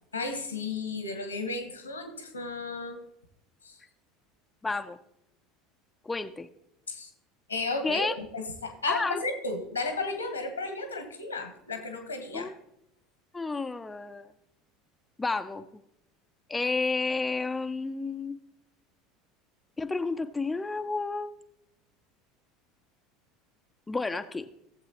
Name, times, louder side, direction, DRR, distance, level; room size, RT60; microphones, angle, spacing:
voice 1, 0.1-3.0 3.6-3.7 6.9-7.1 7.5-12.5, left 3 dB, 85° left, 7 dB, 1.5 m, -33 dB
voice 2, 4.6-5.0 6.0-6.5 7.8-8.1 8.9-9.2 12.3-12.5 13.3-14.3 15.2-15.6 16.5-18.4 19.8-21.4 23.9-24.5, left 3 dB, 15° left, 8 dB, 0.5 m, -31 dB
16.5 x 7.5 x 2.9 m, 0.81 s
figure-of-eight pair, 70°, 0 cm